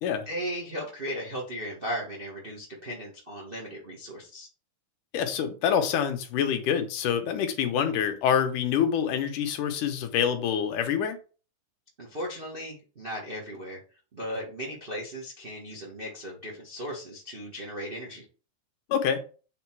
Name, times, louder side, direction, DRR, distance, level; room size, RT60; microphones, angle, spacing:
voice 1, 0.2-4.5 12.0-13.8 14.1-18.2, equal, 70° right, 0.5 m, -36 dB
voice 2, 5.1-11.2 18.9-19.2, left 8 dB, 75° left, 2.4 m, -26 dB
8.4 x 3.9 x 4.6 m
omnidirectional pair, 3.9 m